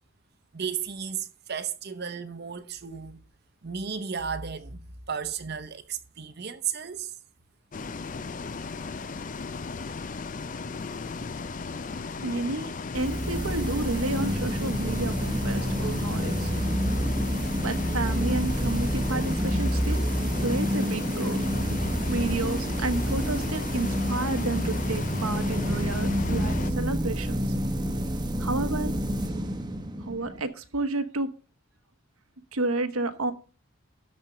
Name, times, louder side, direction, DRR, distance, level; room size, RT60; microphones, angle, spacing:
voice 1, 0.5-3.2 3.6-4.8 5.1-7.1, right 7 dB, 50° right, 0.8 m, -34 dB
Bus, 7.7-26.7, left 4 dB, 35° left, 0.4 m, -36 dB
voice 2, 12.2-16.5 17.6-20.0 20.4-21.4 22.0-27.5 28.4-28.9 30.0-31.3 32.5-33.3, right 2 dB, 85° right, 1.1 m, -31 dB
sound 1, 12.9-30.5, equal, 20° right, 0.9 m, -28 dB
13.0 x 4.4 x 6.6 m
head